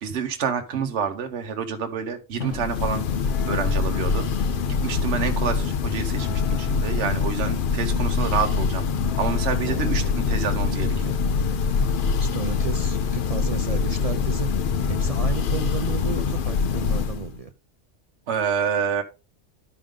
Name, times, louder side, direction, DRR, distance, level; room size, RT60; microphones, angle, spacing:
voice 1, 0.0-3.1 3.5-4.3 4.8-8.8 9.2-10.9 18.3-19.0, right 6 dB, 70° right, 1.1 m, -28 dB
Drum, 2.4-5.1, left 3 dB, 80° left, 1.5 m, -42 dB
Church bell, 2.4-17.4, left 5 dB, 55° left, 0.7 m, -24 dB
voice 2, 5.0-5.5 9.6-10.4 12.1-17.5, right 5 dB, 55° right, 0.4 m, -34 dB
11.5 x 5.1 x 3.5 m
omnidirectional pair, 1.2 m